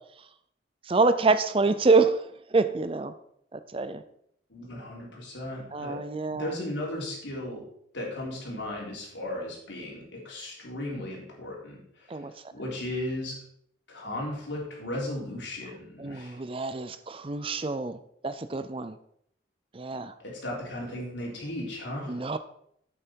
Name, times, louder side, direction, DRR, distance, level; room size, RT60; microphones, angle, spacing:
voice 1, 0.9-3.1 3.5-4.0 5.7-6.5 12.1-12.3 16.0-19.0 19.7-20.1 22.1-22.4, right 3 dB, 30° right, 12 dB, 0.5 m, -26 dB
voice 2, 4.5-6.0 6.3-7.6 7.9-12.2 12.5-13.4 13.9-16.4 20.2-22.1, left 1 dB, 75° left, -3 dB, 3.7 m, -36 dB
8.7 x 8.7 x 4.6 m, 0.69 s
head